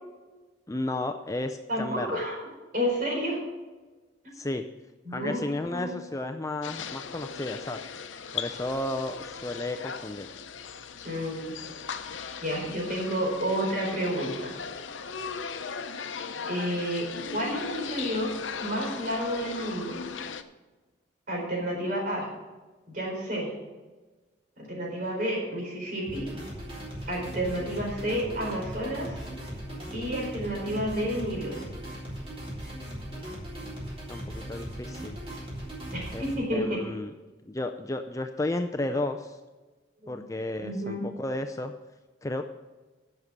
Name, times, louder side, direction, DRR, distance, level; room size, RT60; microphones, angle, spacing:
voice 1, 0.7-2.2 4.3-4.6 5.1-7.8 8.3-10.3 34.1-35.2 36.1-36.2 36.5-37.1 37.5-39.4 40.1-41.7 42.2-42.5, left 2 dB, 15° left, 6 dB, 0.4 m, -33 dB
voice 2, 1.7-2.4 2.7-3.4 5.0-5.4 5.7-6.0 11.0-11.5 12.4-14.5 16.5-18.3 18.6-20.0 21.3-22.3 22.9-23.5 24.6-26.3 27.1-29.2 29.9-31.5 35.9-36.8 40.0-40.1 40.6-41.1, equal, 45° right, -1 dB, 4.2 m, -30 dB
sound 1, 6.6-20.4, left 6 dB, 90° left, 0.7 m, -38 dB
sound 2, 26.1-36.3, equal, 30° right, 3.6 m, -38 dB
11.0 x 6.7 x 7.1 m, 1.2 s
head